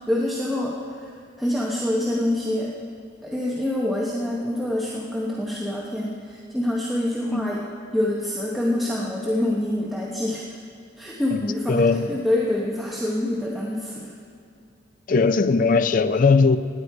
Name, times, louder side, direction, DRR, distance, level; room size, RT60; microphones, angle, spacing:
voice 1, 0.1-2.7 3.2-7.6 7.9-10.6 11.0-14.1, left 1 dB, ahead, 1.0 m, -26 dB
voice 2, 11.7-12.2 15.1-16.6, left 4 dB, 45° left, 0.4 m, -19 dB
17.0 x 9.8 x 4.7 m
head